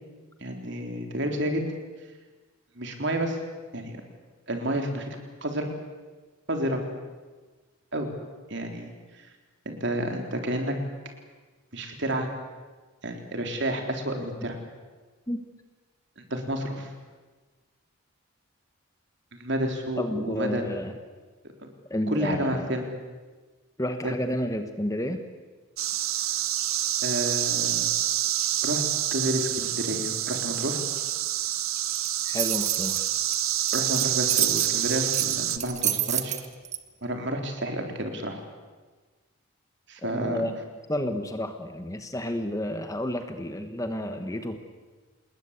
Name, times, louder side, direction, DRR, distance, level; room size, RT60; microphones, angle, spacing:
voice 1, 0.4-1.6 2.8-3.4 3.7-4.0 4.5-5.7 6.5-6.8 7.9-8.1 8.5-8.9 9.2-9.3 9.7-10.8 11.7-12.3 13.0-14.6 16.2-16.9 19.3-20.6 22.1-22.9 24.0-24.1 27.0-27.9 28.6-28.8 29.1-30.8 33.7-36.4 37.0-38.4 39.9-40.4, right 1 dB, 55° right, 4 dB, 3.8 m, -30 dB
voice 2, 20.0-20.9 21.9-22.8 23.8-25.3 32.2-33.1 40.0-40.5 40.9-44.6, equal, 15° left, 7 dB, 1.3 m, -30 dB
sound 1, 25.8-35.6, right 12 dB, 70° right, 1.2 m, -27 dB
sound 2, 32.0-36.8, right 11 dB, 30° right, 1.3 m, -29 dB
28.0 x 20.5 x 8.3 m, 1.3 s
head